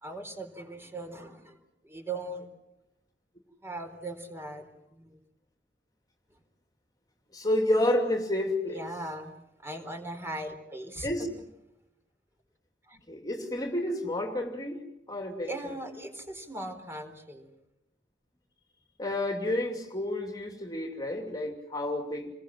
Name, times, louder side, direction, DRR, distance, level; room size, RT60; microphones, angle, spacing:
voice 1, 0.0-1.6 1.8-2.5 3.6-5.2 8.7-9.3 9.6-11.1 12.9-13.0 15.4-17.5, right 2 dB, 15° right, 4.0 m, -39 dB
voice 2, 7.3-8.8 11.0-11.3 13.1-15.5 19.0-22.3, left 1 dB, 20° left, 2.7 m, -30 dB
29.0 x 22.0 x 7.6 m
head